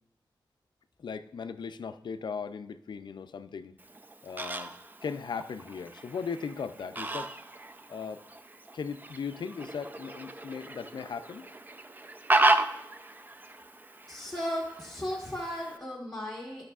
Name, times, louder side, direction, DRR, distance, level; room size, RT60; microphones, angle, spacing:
voice 1, 1.0-3.8 4.2-4.7 5.0-7.3 7.9-8.2 8.7-11.5, left 6 dB, 70° left, 11 dB, 0.4 m, -38 dB
Fowl, 3.8-15.8, right 2 dB, 25° right, 0.4 m, -33 dB
voice 2, 14.1-16.7, equal, 5° left, -3 dB, 1.3 m, -35 dB
13.5 x 6.1 x 2.4 m, 0.78 s
wide cardioid pair, 90°, 8 cm